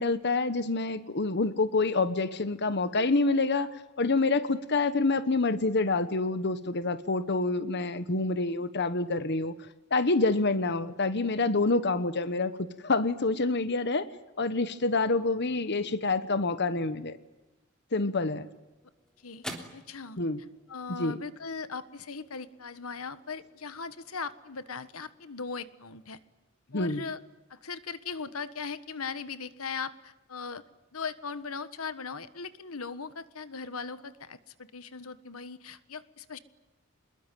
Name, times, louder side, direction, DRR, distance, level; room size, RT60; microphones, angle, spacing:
voice 1, 0.0-9.5 9.9-12.5 12.8-14.1 14.4-17.2 17.9-18.5 20.2-20.4 21.0-21.2 26.7-27.0, left 3 dB, 50° left, 12 dB, 1.2 m, -27 dB
sound 1, 18.1-26.7, equal, 5° left, 3.3 m, -51 dB
voice 2, 19.7-20.2 20.7-26.2 26.7-27.2 27.5-30.6 30.9-36.4, left 5 dB, 85° left, 13 dB, 1.5 m, -39 dB
26.5 x 21.5 x 9.2 m, 1.1 s
head